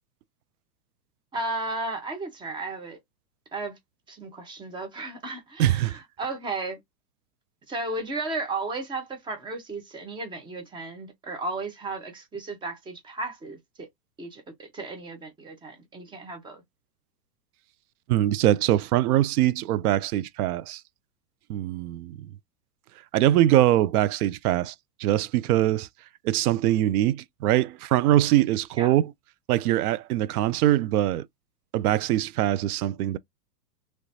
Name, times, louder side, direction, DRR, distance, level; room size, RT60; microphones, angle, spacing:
voice 1, 1.3-3.0 3.5-3.8 4.1-6.8 7.7-13.9 14.2-16.6 28.8-28.9, right 2 dB, 10° right, 0.7 m, -34 dB
voice 2, 5.6-6.0 18.1-20.8 21.5-22.2 23.1-24.7 25.0-25.9 26.2-29.1 29.5-31.2 31.7-33.2, right 13 dB, 65° right, 0.5 m, -23 dB
3.1 x 3.1 x 2.6 m
hypercardioid pair, 130°, 48 cm